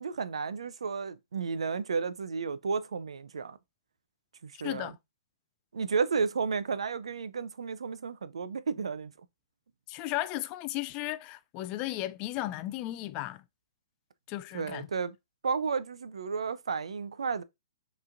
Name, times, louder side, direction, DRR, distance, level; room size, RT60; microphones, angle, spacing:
voice 1, 0.0-3.6 4.4-5.0 5.7-9.1 14.5-15.2 15.4-17.4, right 5 dB, 85° right, 0.5 m, -32 dB
voice 2, 9.9-13.4 14.3-14.9, left 16 dB, 30° left, 0.3 m, -35 dB
5.5 x 3.1 x 2.5 m
hypercardioid pair, 135°, 3 cm